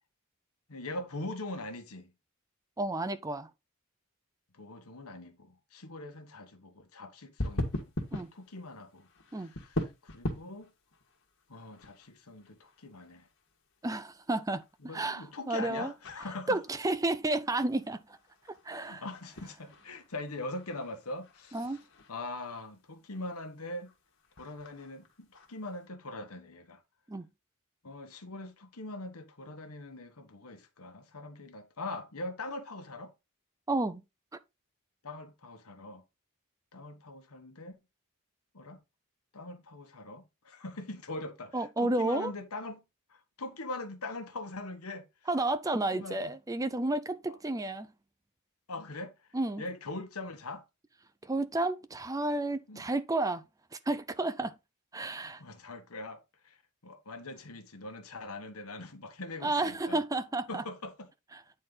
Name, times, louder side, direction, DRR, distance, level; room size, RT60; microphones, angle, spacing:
voice 1, 0.7-2.1 4.5-7.7 8.3-9.1 9.4-10.7 11.5-13.3 14.8-16.6 18.8-21.7 22.1-23.9 24.4-26.8 27.8-33.1 35.0-36.0 36.7-37.8 38.5-38.8 39.3-42.8 43.1-45.0 45.9-46.3 47.3-47.4 48.7-49.1 49.6-50.6 52.7-52.8 55.4-56.6 56.8-60.0 60.5-61.1, left 2 dB, 90° left, 1.4 m, -42 dB
voice 2, 2.8-3.5 8.1-8.3 9.3-9.5 13.8-14.6 14.9-15.9 16.5-18.2 18.6-19.0 21.5-21.8 27.1-27.3 33.7-34.0 41.5-42.3 45.3-47.9 49.3-49.6 51.2-53.4 53.7-54.5 54.9-55.4 59.4-60.6, right 2 dB, 15° right, 0.5 m, -31 dB
sound 1, 7.4-25.9, left 1 dB, 60° left, 1.7 m, -43 dB
9.5 x 4.3 x 3.9 m
head